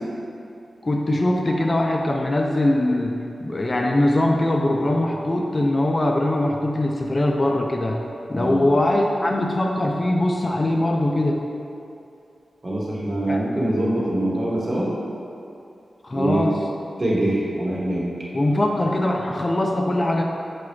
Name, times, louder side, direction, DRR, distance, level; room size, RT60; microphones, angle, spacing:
voice 1, 0.8-8.0 8.3-11.4 13.3-13.4 16.0-16.6 18.3-20.2, left 1 dB, 35° left, 1 dB, 0.3 m, -21 dB
voice 2, 8.3-8.7 12.6-14.9 16.1-16.5 17.0-18.3, right 1 dB, 35° right, -6 dB, 1.0 m, -24 dB
5.9 x 2.3 x 3.1 m, 2.6 s
cardioid pair, 70°, 0 cm